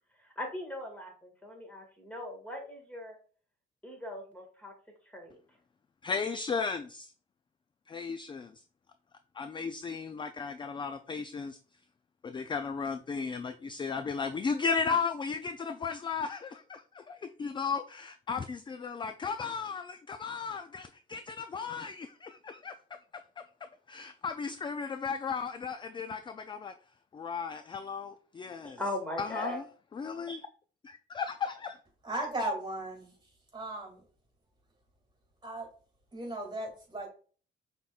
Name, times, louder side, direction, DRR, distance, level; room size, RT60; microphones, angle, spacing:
voice 1, 0.2-3.2 3.8-4.7 5.0-5.4 28.6-29.6, left 1 dB, 5° left, 1.8 m, -39 dB
voice 2, 6.0-7.1 7.9-8.6 9.3-11.6 12.2-22.7 23.9-26.7 27.1-28.8 29.2-29.6 29.9-30.5 30.8-31.8, left 5 dB, 25° left, 0.3 m, -35 dB
voice 3, 32.0-33.1 33.5-34.0 35.4-35.7 36.1-37.1, right 1 dB, 20° right, 2.3 m, -36 dB
5.8 x 3.6 x 2.4 m
cardioid pair, 90°, 20 cm